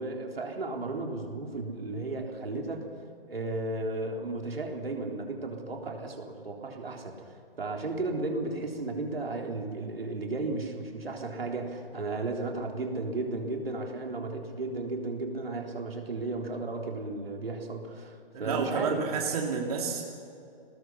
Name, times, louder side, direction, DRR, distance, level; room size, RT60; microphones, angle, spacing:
voice 1, 0.0-2.9 3.3-7.1 7.6-19.2, right 2 dB, 80° right, 1 dB, 3.8 m, -34 dB
voice 2, 18.3-20.0, right 5 dB, 40° right, 1 dB, 2.4 m, -30 dB
24.0 x 19.5 x 5.7 m, 2.6 s
hypercardioid pair, 150°, 29 cm